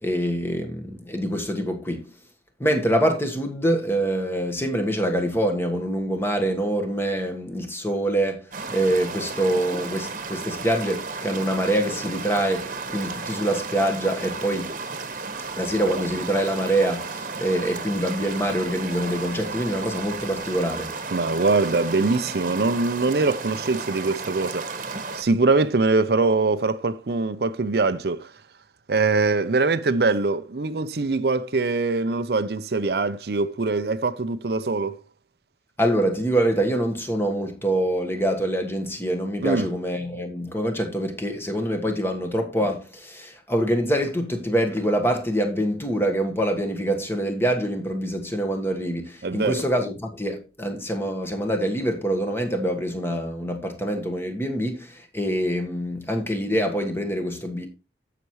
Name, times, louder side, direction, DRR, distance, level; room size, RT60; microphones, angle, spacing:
voice 1, 0.0-2.1 2.6-14.7 15.6-20.9 35.8-57.7, right 1 dB, 15° left, 1.4 m, -25 dB
sound 1, 8.5-25.2, right 4 dB, 45° right, 1.2 m, -33 dB
voice 2, 21.1-24.8 25.1-28.3 28.9-35.0 39.4-39.7 49.2-49.6, right 3 dB, 65° right, 0.6 m, -23 dB
15.0 x 5.9 x 3.1 m
head